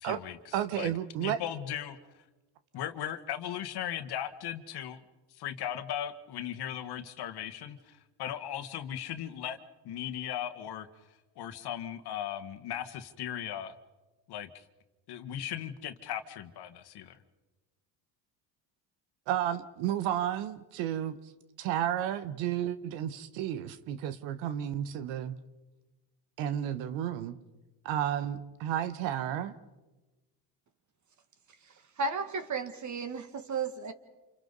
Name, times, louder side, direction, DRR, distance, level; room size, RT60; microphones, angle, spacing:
voice 1, 0.0-0.9 1.2-2.0 2.7-5.0 5.3-9.6 9.8-10.9 11.4-13.7 14.3-14.6 15.1-17.2, left 10 dB, 55° left, 1.7 m, -37 dB
voice 2, 0.5-1.4 19.3-21.2 21.6-25.3 26.4-27.4 27.8-29.5, right 10 dB, 75° right, 1.3 m, -32 dB
voice 3, 32.0-33.9, right 4 dB, 40° right, 2.3 m, -33 dB
29.0 x 27.5 x 4.1 m
supercardioid pair, 90°, 45 cm